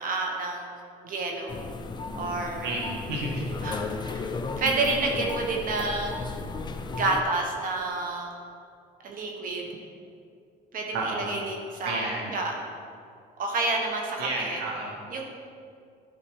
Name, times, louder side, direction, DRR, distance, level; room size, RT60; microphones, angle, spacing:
voice 1, 0.0-1.6 2.2-2.8 3.6-6.4 6.9-8.4 9.0-9.7 10.7-12.5 13.4-14.6 15.1-15.2, right 3 dB, 55° right, 1 dB, 1.3 m, -30 dB
sound 1, 1.5-7.2, left 3 dB, 25° left, 0.6 m, -34 dB
voice 2, 2.6-3.4 10.9-11.3 11.8-12.3 14.2-14.9, right 2 dB, 85° right, -2 dB, 1.9 m, -31 dB
11.5 x 4.9 x 4.8 m, 2.3 s
cardioid pair, 110°, 17 cm